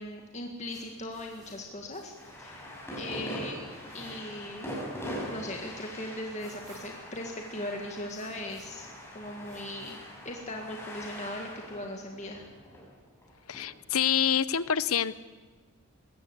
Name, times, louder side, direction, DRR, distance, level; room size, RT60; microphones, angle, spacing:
voice 1, 0.0-2.7 3.0-3.6 3.9-4.7 5.3-8.9 9.1-10.0 10.2-12.5, left 1 dB, 35° left, 1 dB, 1.9 m, -39 dB
sound 1, 0.7-10.6, right 1 dB, 15° right, 7.5 m, -58 dB
sound 2, 2.2-13.6, equal, 10° left, 6.2 m, -42 dB
voice 2, 13.5-15.1, left 8 dB, 90° left, 17 dB, 0.8 m, -26 dB
21.5 x 17.0 x 8.2 m, 1.4 s
head